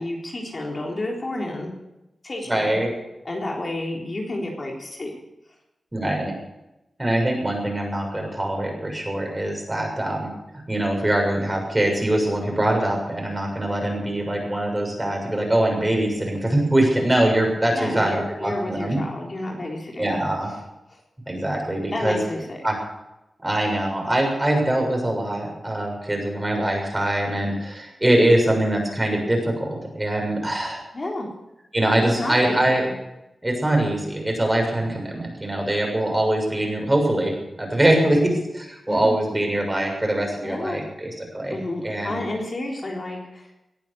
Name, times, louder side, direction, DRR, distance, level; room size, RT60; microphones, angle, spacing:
voice 1, 0.0-1.7 2.2-2.8 3.2-5.1 17.7-20.2 20.5-20.6 21.9-22.6 30.9-31.3 32.2-32.6 38.9-39.1 40.4-40.8 41.5-43.5, left 1 dB, 45° left, -1 dB, 3.8 m, -30 dB
voice 2, 2.5-2.9 5.9-6.3 7.0-10.3 10.7-19.0 20.0-20.5 21.3-22.2 22.6-22.8 23.4-30.8 31.7-32.8 33.4-41.6 41.8-42.2, right 1 dB, 20° right, 1 dB, 6.8 m, -23 dB
19.0 x 10.5 x 7.0 m, 0.92 s
cardioid pair, 60°, 0 cm